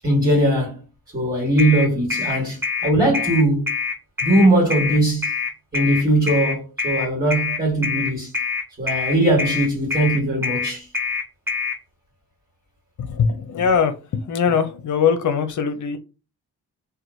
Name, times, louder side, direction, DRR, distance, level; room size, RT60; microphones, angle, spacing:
voice 1, 0.0-0.8 1.1-3.7 4.2-5.3 5.7-8.3 8.8-10.9, right 1 dB, 25° right, 1.6 m, -20 dB
sound 1, 1.6-11.8, left 5 dB, 5° right, 0.6 m, -25 dB
voice 2, 13.0-16.0, left 6 dB, 55° left, 0.6 m, -21 dB
2.9 x 2.2 x 2.6 m
cardioid pair, 90°, 36 cm